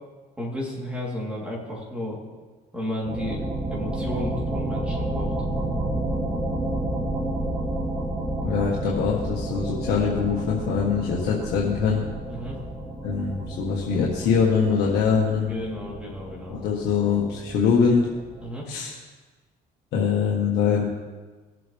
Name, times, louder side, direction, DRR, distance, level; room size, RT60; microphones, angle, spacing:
voice 1, 0.4-2.2 2.7-5.3 12.3-12.6 15.5-16.6 18.4-18.7, left 1 dB, 5° right, -4 dB, 3.6 m, -33 dB
sound 1, 3.0-18.4, right 1 dB, 25° right, 2.9 m, -31 dB
voice 2, 8.4-12.0 13.0-15.5 16.5-18.1 18.7-18.9 19.9-20.8, left 6 dB, 75° left, -3 dB, 1.6 m, -23 dB
19.5 x 7.7 x 3.5 m, 1.3 s
cardioid pair, 110°, 17 cm